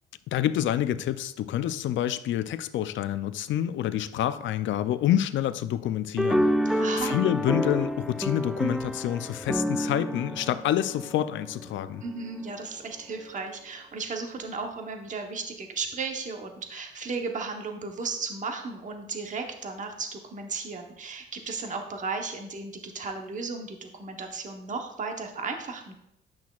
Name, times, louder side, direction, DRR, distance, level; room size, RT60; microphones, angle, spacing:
voice 1, 0.3-12.0, left 11 dB, 75° left, 0.5 m, -28 dB
sound 1, 6.2-11.7, equal, ahead, 0.3 m, -28 dB
voice 2, 6.8-7.2 12.0-25.9, right 4 dB, 40° right, 1.0 m, -35 dB
10.5 x 6.1 x 2.4 m
cardioid pair, 90°, 20 cm